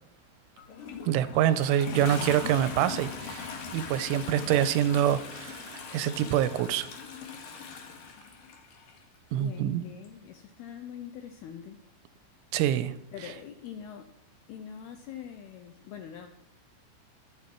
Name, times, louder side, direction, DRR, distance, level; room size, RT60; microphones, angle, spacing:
Toilet flush, 0.6-9.0 10.0-10.1, left 5 dB, 55° left, 3.0 m, -40 dB
voice 1, 1.1-6.9 9.3-9.8 12.5-12.9, right 11 dB, 85° right, 14 dB, 3.1 m, -26 dB
voice 2, 1.8-2.3 9.3-11.8 13.1-14.1 14.5-16.3, left 9 dB, 85° left, 7 dB, 2.3 m, -43 dB
24.5 x 8.4 x 4.6 m, 0.76 s
omnidirectional pair, 5.8 m